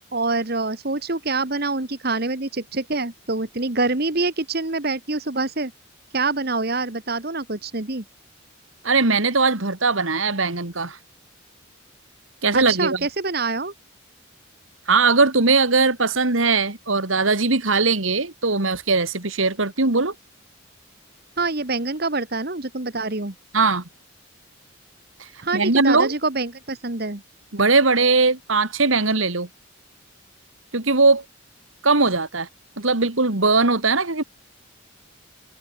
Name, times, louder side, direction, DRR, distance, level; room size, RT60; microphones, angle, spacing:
voice 1, 0.1-5.7 6.1-8.0 12.5-13.7 21.4-23.3 25.4-27.2, right 3 dB, 50° right, 1.7 m, -25 dB
voice 2, 8.8-11.0 12.4-13.0 14.9-20.1 23.5-23.8 25.5-26.1 27.5-29.5 30.7-31.2 31.8-32.5 32.8-34.2, right 3 dB, 75° right, 2.5 m, -20 dB
head